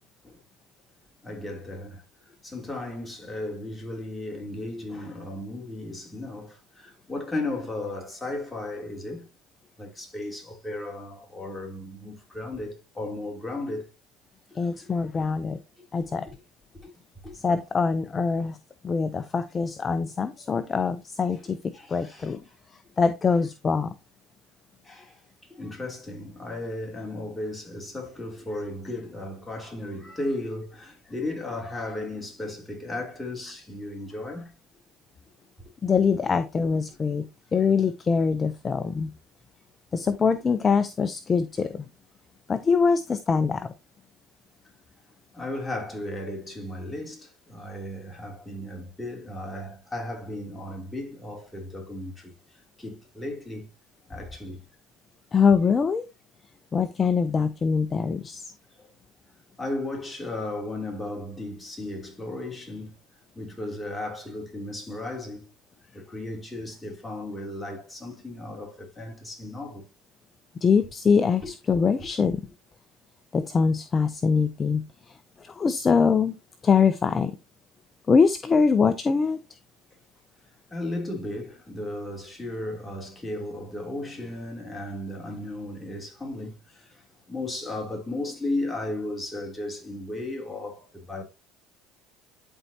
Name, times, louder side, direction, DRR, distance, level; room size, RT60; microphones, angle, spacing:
voice 1, 1.2-9.3 9.8-13.9 14.5-14.7 16.0-16.4 16.8-16.9 17.2-17.4 21.7-22.3 24.8-25.2 25.5-34.5 35.6-35.7 45.3-53.7 54.1-54.7 58.8-58.9 59.6-63.0 63.3-65.5 65.9-69.9 71.4-71.5 72.0-72.1 80.7-91.2, left 1 dB, 10° left, 2.9 m, -35 dB
voice 2, 14.6-15.6 15.9-16.3 17.3-18.6 18.8-21.6 21.9-22.4 23.0-23.9 35.8-37.2 37.5-39.1 39.9-41.9 42.5-43.7 55.3-56.0 56.7-58.5 70.6-72.4 73.3-76.3 76.6-77.3 78.1-79.4, left 5 dB, 30° left, 0.6 m, -23 dB
11.0 x 4.5 x 2.8 m
supercardioid pair, 85°, 0 cm